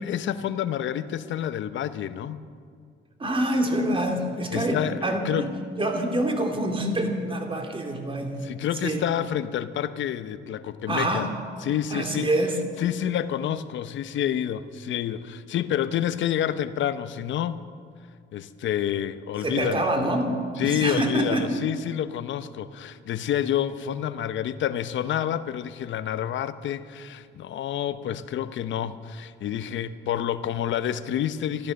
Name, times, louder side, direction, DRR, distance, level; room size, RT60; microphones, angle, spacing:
voice 1, 0.0-2.4 4.5-5.5 8.4-11.3 11.6-12.3 12.8-17.6 18.3-19.8 20.6-31.7, left 10 dB, 70° left, 13 dB, 0.8 m, -28 dB
voice 2, 3.2-5.5 5.8-8.4 8.8-9.0 10.9-11.3 11.9-12.6 19.4-20.3 20.6-21.6, right 1 dB, 25° right, 3 dB, 2.5 m, -26 dB
14.0 x 13.5 x 6.5 m, 2.2 s
cardioid pair, 90°, 20 cm